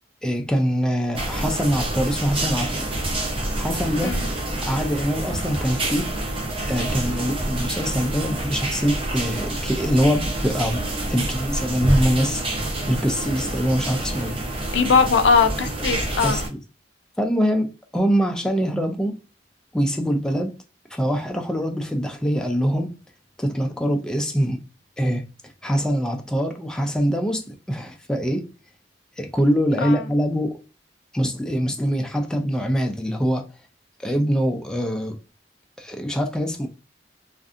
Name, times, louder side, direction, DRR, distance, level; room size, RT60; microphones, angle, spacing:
voice 1, 0.2-2.9 3.6-4.2 4.6-6.1 6.7-12.4 12.9-14.3 15.8-15.9 16.2-16.6 17.2-19.2 19.7-20.5 20.9-22.9 23.4-24.6 25.0-25.3 25.6-28.5 29.2-30.6 31.1-33.4 34.0-35.2 35.8-36.7, equal, 5° left, 0.3 m, -23 dB
sound 1, 1.1-16.5, right 1 dB, 30° right, 0.6 m, -27 dB
voice 2, 14.7-16.4 29.8-30.1, left 5 dB, 70° left, 0.4 m, -20 dB
2.6 x 2.4 x 2.4 m
head